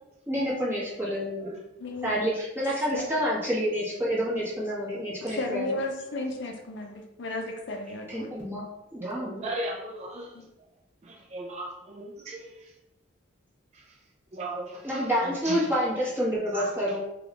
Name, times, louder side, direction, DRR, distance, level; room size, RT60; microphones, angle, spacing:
voice 1, 0.3-1.5 2.0-5.8 8.1-8.6 8.9-9.4 14.8-17.0, equal, 10° right, -8 dB, 1.2 m, -28 dB
voice 2, 1.8-2.1 2.9-3.0 5.4-8.3 10.3-10.4, left 2 dB, 60° left, 3 dB, 0.5 m, -34 dB
voice 3, 9.0-10.3 11.0-12.7 13.7-14.0 14.3-15.7 16.5-16.7, right 2 dB, 30° right, 0 dB, 0.3 m, -37 dB
3.4 x 2.3 x 3.6 m, 0.94 s
head